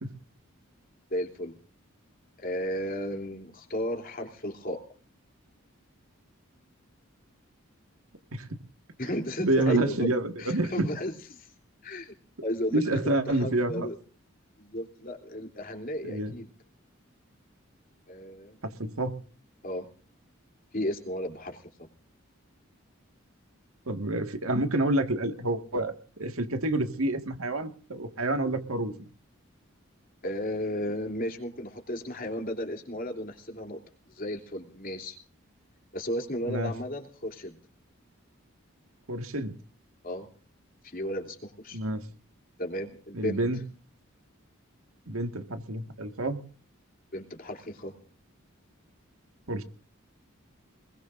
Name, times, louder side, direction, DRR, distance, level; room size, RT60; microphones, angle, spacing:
voice 1, 1.1-1.6 2.4-4.8 9.0-10.1 10.4-11.5 11.8-12.1 12.4-13.9 14.6-16.4 18.1-18.6 19.6-19.8 20.7-21.6 30.2-33.8 34.2-35.2 35.9-37.6 40.0-40.3 40.8-41.8 42.6-43.4 47.1-47.9, equal, 45° left, 4 dB, 3.1 m, -34 dB
voice 2, 9.4-10.9 12.7-13.9 16.0-16.3 18.6-19.2 23.9-29.0 36.5-36.7 39.1-39.6 41.7-42.1 43.1-43.6 45.1-46.4 49.5-49.6, right 1 dB, 90° right, 7 dB, 1.8 m, -28 dB
23.5 x 21.5 x 2.6 m, 0.40 s
head